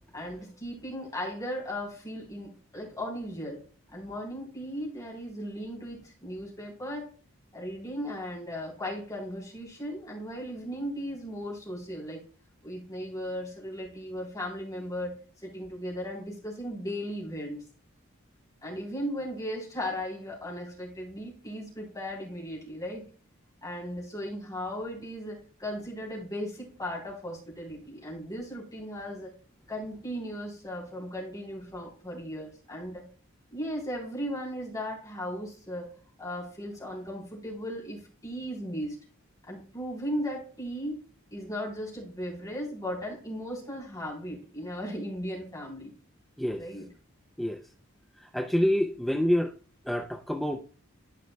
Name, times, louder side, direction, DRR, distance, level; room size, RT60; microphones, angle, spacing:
voice 1, 0.1-3.6 3.9-7.1 7.5-12.2 12.6-17.6 18.6-23.0 23.6-29.3 29.7-33.0 33.5-39.0 39.4-41.0 41.3-45.9 46.6-46.8, equal, 15° left, 3.4 m, -37 dB
voice 2, 48.2-49.5 49.9-50.8, equal, ahead, 0.4 m, -27 dB
12.5 x 5.1 x 2.2 m
head